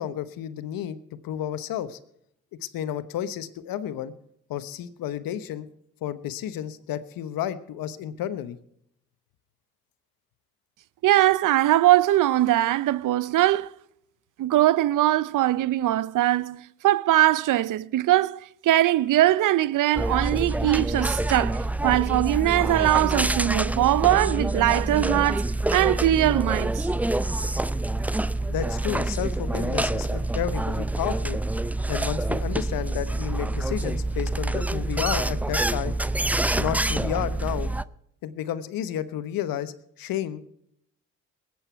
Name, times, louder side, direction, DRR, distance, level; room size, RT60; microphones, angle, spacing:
voice 1, 0.0-2.0 2.6-4.1 4.5-5.7 6.0-8.6 28.5-31.4 31.9-36.0 36.5-37.7 38.2-40.4, left 11 dB, 75° left, 1.1 m, -31 dB
voice 2, 11.0-13.7 14.4-26.9, right 14 dB, 60° right, 0.6 m, -21 dB
sound 1, 20.0-37.8, right 2 dB, 5° right, 0.5 m, -26 dB
21.0 x 8.9 x 4.5 m
hypercardioid pair, 50°, 35 cm